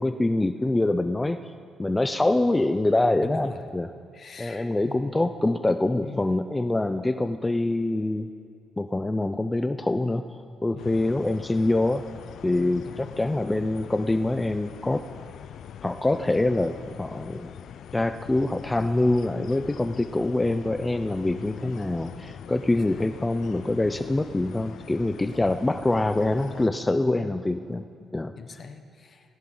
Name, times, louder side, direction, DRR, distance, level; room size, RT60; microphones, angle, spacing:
voice 1, 0.0-1.5 1.8-3.9 4.4-8.3 8.8-12.0 12.4-15.0 15.8-17.5 17.9-27.8 28.1-28.3, left 2 dB, 15° left, 8 dB, 0.6 m, -25 dB
voice 2, 3.2-3.6 4.1-5.2 6.0-6.2 10.7-11.1 12.7-13.1 22.6-23.1 25.3-25.6 27.0-27.3 28.0-29.4, left 5 dB, 45° left, 8 dB, 1.2 m, -43 dB
sound 1, 10.8-26.7, left 9 dB, 70° left, 0.4 m, -43 dB
18.5 x 16.0 x 4.0 m, 2.3 s
cardioid pair, 90°, 0 cm